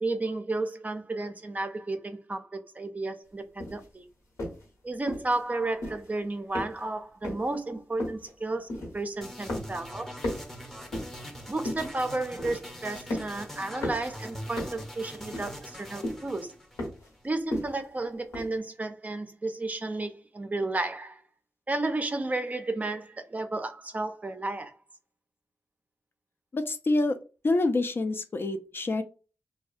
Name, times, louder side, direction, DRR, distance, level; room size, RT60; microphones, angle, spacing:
voice 1, 0.0-4.1 4.8-10.1 11.5-16.5 17.2-21.2 21.7-24.8, right 2 dB, 30° right, 0.4 m, -32 dB
sound 1, 3.6-3.9 4.4-4.7 5.1-5.4 5.8-6.1 6.5-7.0 7.2-7.5 8.0-8.3 8.7-9.2 9.5-9.9 10.2-11.2 11.7-12.0 12.4-12.7 13.1-13.5 13.8-14.1 14.6-14.9 15.3-15.7 16.0-16.3 16.8-17.1 17.5-17.9 18.3-18.5, left 1 dB, 80° left, 1.0 m, -35 dB
sound 2, 9.2-17.3, equal, 5° left, 0.7 m, -43 dB
voice 2, 26.5-27.2 27.4-29.0, left 2 dB, 45° left, 0.3 m, -26 dB
2.6 x 2.2 x 2.4 m
cardioid pair, 55°, 5 cm